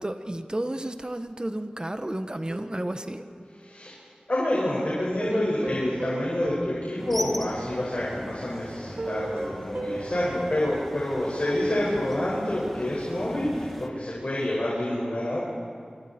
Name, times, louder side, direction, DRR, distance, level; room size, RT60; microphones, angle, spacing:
voice 1, 0.0-3.2, right 1 dB, 30° right, 7 dB, 1.4 m, -32 dB
sound 1, 2.5-4.1 5.2-7.8 8.2-8.3 9.0-11.5 11.9-12.0, right 2 dB, 80° right, 2.5 m, -38 dB
voice 2, 3.6-4.0 4.3-15.4, left 1 dB, 55° left, -6 dB, 5.8 m, -28 dB
sound 2, 7.0-13.9, equal, 5° left, 2.0 m, -39 dB
27.5 x 25.0 x 4.5 m, 2.1 s
wide cardioid pair, 45°, 3 cm